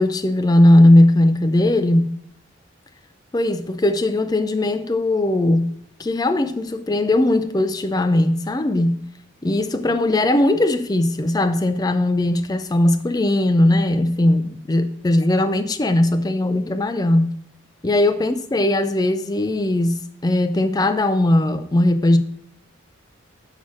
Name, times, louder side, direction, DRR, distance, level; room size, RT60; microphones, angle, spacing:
voice 1, 0.0-2.1 3.3-5.7 6.0-8.9 9.4-17.3 17.8-22.2, left 1 dB, 20° left, 0.4 m, -18 dB
6.1 x 5.7 x 6.2 m
head